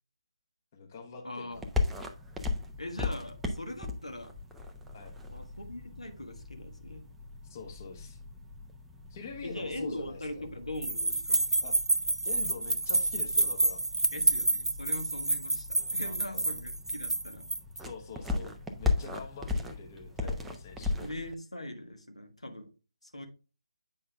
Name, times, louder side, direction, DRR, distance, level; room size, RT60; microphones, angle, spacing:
voice 1, 0.7-1.7 4.9-5.2 7.5-8.2 9.1-10.4 11.6-11.8 12.2-13.8 15.7-16.5 17.7-21.0, left 5 dB, 30° left, 1.1 m, -45 dB
voice 2, 1.2-1.6 2.8-4.3 5.3-7.1 9.4-11.4 14.1-17.5 21.0-22.7 23.0-23.3, left 1 dB, 80° left, 1.4 m, -41 dB
sound 1, 1.5-21.3, left 3 dB, 5° right, 0.5 m, -38 dB
sound 2, 10.8-17.8, right 2 dB, 70° right, 0.6 m, -28 dB
8.6 x 5.4 x 2.3 m
figure-of-eight pair, 145°, 3 cm